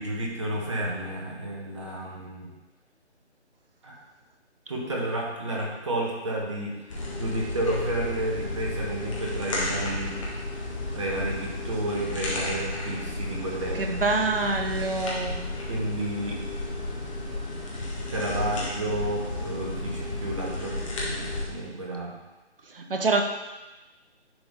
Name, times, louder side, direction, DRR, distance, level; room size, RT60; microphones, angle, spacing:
voice 1, 0.0-2.5 3.8-4.0 4.7-10.2 10.8-13.9 15.7-16.4 17.9-22.2, right 1 dB, 25° right, -2 dB, 1.2 m, -31 dB
snail munching, 6.9-21.5, left 2 dB, 30° left, 1.4 m, -33 dB
voice 2, 13.7-15.4 22.7-23.2, right 3 dB, 50° right, 4 dB, 1.0 m, -26 dB
10.0 x 3.9 x 4.1 m, 1.1 s
figure-of-eight pair, 155°, 35 cm